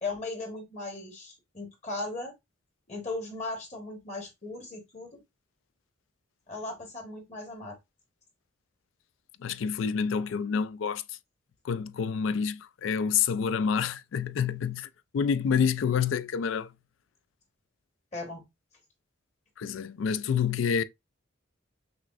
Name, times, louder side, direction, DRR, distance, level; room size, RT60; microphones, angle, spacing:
voice 1, 0.0-2.3 2.9-5.2 6.5-7.8 18.1-18.4, left 2 dB, 35° left, 1.2 m, -37 dB
voice 2, 9.4-11.0 11.6-14.9 15.1-16.7 19.6-20.8, left 6 dB, 75° left, 0.3 m, -28 dB
5.9 x 2.0 x 2.4 m
head